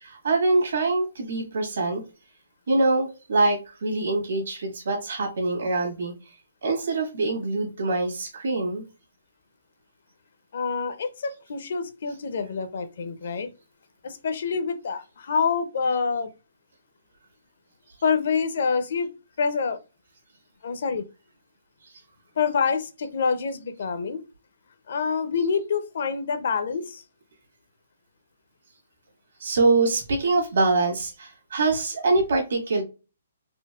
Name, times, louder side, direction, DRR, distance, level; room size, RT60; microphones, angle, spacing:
voice 1, 0.0-2.0 2.7-6.1 6.6-8.8 29.4-32.8, right 3 dB, 75° right, 1.6 m, -24 dB
voice 2, 10.5-13.5 14.0-16.3 18.0-19.1 19.4-19.8 20.6-21.1 22.4-24.2 24.9-27.0, left 5 dB, 55° left, 0.5 m, -26 dB
4.4 x 2.0 x 2.3 m
hypercardioid pair, 170°, 0 cm